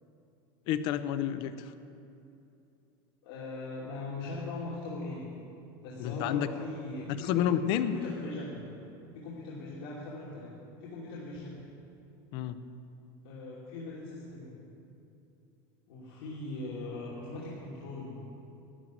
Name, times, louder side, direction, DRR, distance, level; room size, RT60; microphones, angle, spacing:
voice 1, 0.7-1.7 6.0-6.5 7.1-7.9 12.3-12.6, left 10 dB, 40° left, 13 dB, 0.6 m, -30 dB
voice 2, 3.2-5.3 5.8-7.0 7.3-8.6 9.1-11.6 13.2-14.6 15.9-18.2, left 2 dB, 80° left, -7 dB, 2.8 m, -40 dB
12.5 x 11.0 x 7.8 m, 2.8 s
supercardioid pair, 175°, 12 cm